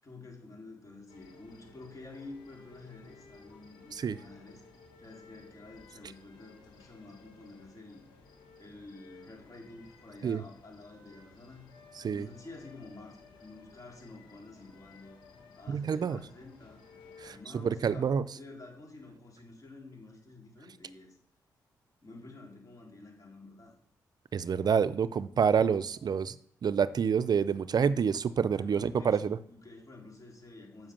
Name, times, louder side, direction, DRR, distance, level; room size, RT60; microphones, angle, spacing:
voice 1, 0.0-4.6 5.0-8.0 8.6-11.7 12.0-15.2 15.5-16.8 17.2-21.2 22.0-23.8 28.5-30.9, left 2 dB, 45° left, 0 dB, 4.2 m, -50 dB
sound 1, 1.1-17.4, left 4 dB, 85° left, 1.8 m, -56 dB
voice 2, 15.7-16.2 17.2-18.2 24.3-26.4 26.6-29.4, right 7 dB, 55° right, 16 dB, 0.5 m, -28 dB
7.7 x 7.5 x 7.4 m, 0.63 s
supercardioid pair, 50°, 8 cm